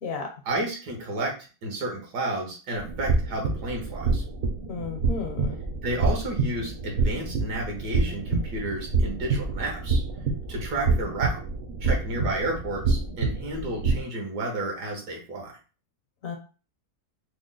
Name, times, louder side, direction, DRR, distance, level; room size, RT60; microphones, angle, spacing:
voice 1, 0.4-1.3 1.6-4.2 5.8-10.0 10.5-11.4 11.8-15.5, right 2 dB, 90° right, 0 dB, 1.7 m, -31 dB
sound 1, 2.7-14.0, right 3 dB, 60° right, 0.8 m, -27 dB
voice 2, 4.7-5.6 16.2-16.4, left 5 dB, 65° left, 3 dB, 1.1 m, -33 dB
3.8 x 2.1 x 3.7 m, 0.36 s
omnidirectional pair, 1.7 m